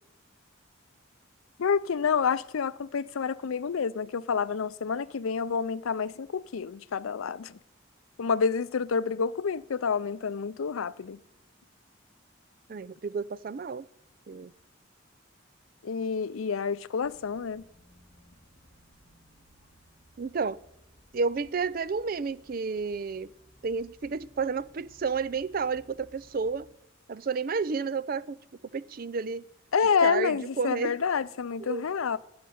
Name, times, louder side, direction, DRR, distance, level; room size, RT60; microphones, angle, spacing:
voice 1, 1.6-7.6 8.2-11.2 15.8-17.6 29.7-32.2, left 6 dB, 90° left, 0.5 m, -28 dB
voice 2, 12.7-13.9 14.3-14.5 20.2-20.6 21.1-23.3 23.6-26.7 27.1-28.4 28.7-29.4 30.0-30.9 31.6-31.9, right 4 dB, 45° right, 0.4 m, -31 dB
sound 1, 16.9-26.7, equal, 25° left, 3.6 m, -60 dB
12.5 x 6.7 x 9.3 m
head